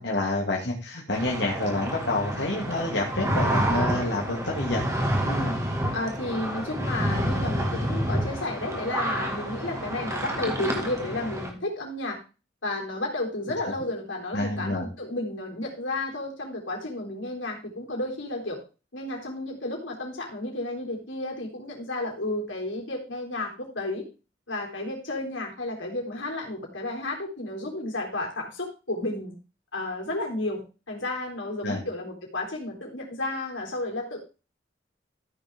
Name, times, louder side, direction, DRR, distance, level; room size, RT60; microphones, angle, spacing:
voice 1, 0.0-4.9 14.3-14.9 31.6-31.8, left 2 dB, 60° left, -2 dB, 2.4 m, -28 dB
sound 1, 1.1-11.5, equal, 15° right, 1.9 m, -29 dB
voice 2, 5.2-5.6 5.9-12.2 12.6-18.6 18.9-24.1 24.5-29.3 29.7-34.2, left 2 dB, 90° left, 0 dB, 3.7 m, -32 dB
14.0 x 6.6 x 3.6 m, 0.32 s
head